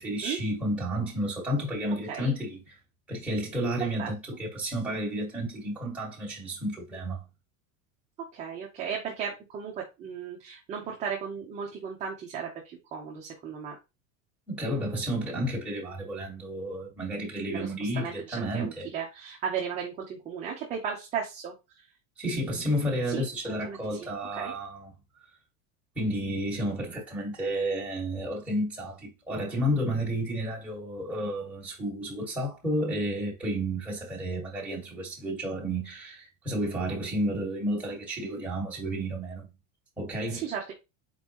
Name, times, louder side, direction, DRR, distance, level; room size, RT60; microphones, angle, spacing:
voice 1, 0.0-2.7 3.1-7.2 14.5-18.9 22.2-24.9 25.9-39.5 40.0-40.5, equal, 5° right, 1.9 m, -31 dB
voice 2, 8.3-13.8 17.4-21.5 23.1-24.1 24.4-24.5 40.3-40.7, right 7 dB, 20° right, 0.7 m, -35 dB
4.5 x 3.9 x 3.0 m
cardioid pair, 175°, 36 cm